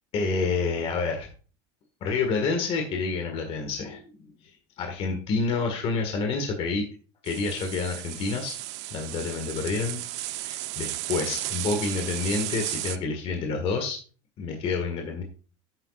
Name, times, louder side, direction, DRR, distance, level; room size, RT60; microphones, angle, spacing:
voice 1, 0.1-1.3 2.0-4.0 4.4-6.9 7.2-8.5 8.9-10.0 10.4-14.0 14.4-15.2, left 4 dB, 40° left, 4 dB, 1.8 m, -28 dB
sound 1, 7.2-13.0, right 16 dB, 80° right, 0.8 m, -34 dB
11.0 x 9.2 x 2.4 m, 0.38 s
supercardioid pair, 140°, 15 cm